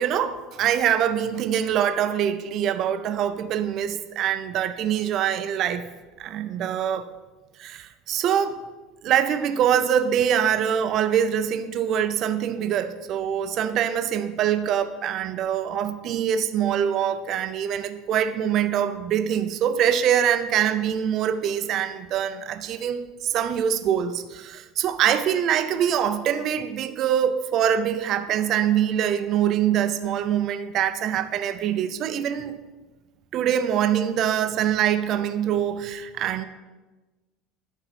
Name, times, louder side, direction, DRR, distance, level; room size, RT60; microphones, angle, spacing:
voice 1, 0.0-5.8 6.2-7.1 7.6-8.6 9.0-32.6 33.3-36.4, right 9 dB, 40° right, 9 dB, 0.6 m, -24 dB
11.5 x 4.5 x 5.9 m, 1.2 s
cardioid pair, 150°, 0 cm